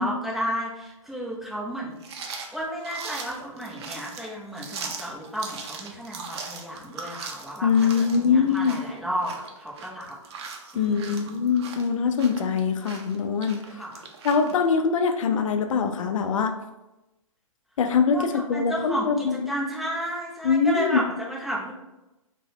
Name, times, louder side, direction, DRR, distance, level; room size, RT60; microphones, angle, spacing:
voice 1, 0.0-2.0 2.5-10.2 10.7-11.2 13.7-14.0 18.1-21.7, equal, ahead, -5 dB, 0.5 m, -32 dB
sound 1, 2.0-14.5, right 5 dB, 50° right, 0.5 m, -40 dB
voice 2, 7.6-8.8 10.7-13.6 14.2-16.5 17.8-19.5 20.4-21.0, left 6 dB, 65° left, 6 dB, 0.4 m, -23 dB
3.8 x 2.1 x 2.7 m, 0.97 s
hypercardioid pair, 135°, 18 cm